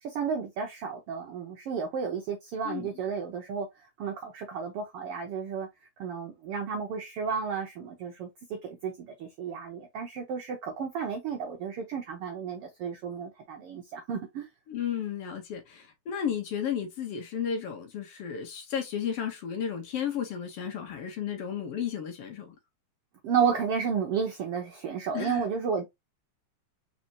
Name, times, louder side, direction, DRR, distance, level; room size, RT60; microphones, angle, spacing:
voice 1, 0.0-3.7 4.0-5.7 6.0-8.3 8.6-14.5 23.2-25.9, right 6 dB, 75° right, 1.4 m, -32 dB
voice 2, 14.7-22.5 25.1-25.4, left 8 dB, 65° left, 1.7 m, -33 dB
4.3 x 4.2 x 2.7 m
omnidirectional pair, 3.5 m